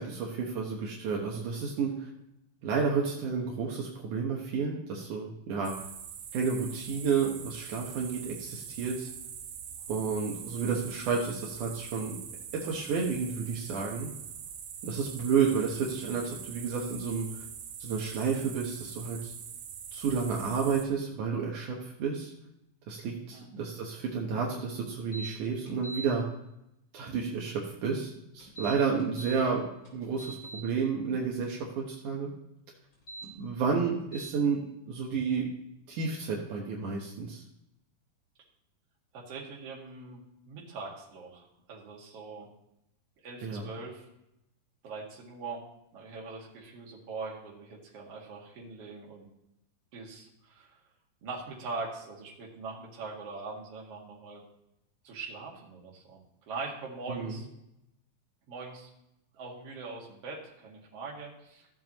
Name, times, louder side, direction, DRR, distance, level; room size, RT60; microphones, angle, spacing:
voice 1, 0.0-2.1 2.6-5.7 6.3-9.1 9.9-12.2 12.5-14.1 14.8-17.4 17.8-19.3 19.9-22.3 22.9-26.2 26.9-29.7 29.9-32.3 33.3-35.5 35.9-37.4 43.4-43.7 57.1-57.4, right 5 dB, 70° right, -2 dB, 2.6 m, -31 dB
sound 1, 5.6-20.8, right 8 dB, 90° right, 2.8 m, -43 dB
sound 2, 25.1-25.3 25.7-26.1 28.4-29.4 29.8-30.6 32.9-33.3 34.1-34.3, right 3 dB, 35° left, 4.3 m, -42 dB
voice 2, 39.1-40.2 40.5-42.5 43.2-44.1 44.8-45.6 45.9-49.3 49.9-50.8 51.2-54.4 55.0-57.5 58.5-58.9 59.3-61.7, right 4 dB, 50° right, -3 dB, 2.9 m, -42 dB
15.5 x 7.3 x 3.0 m, 0.85 s
omnidirectional pair, 3.7 m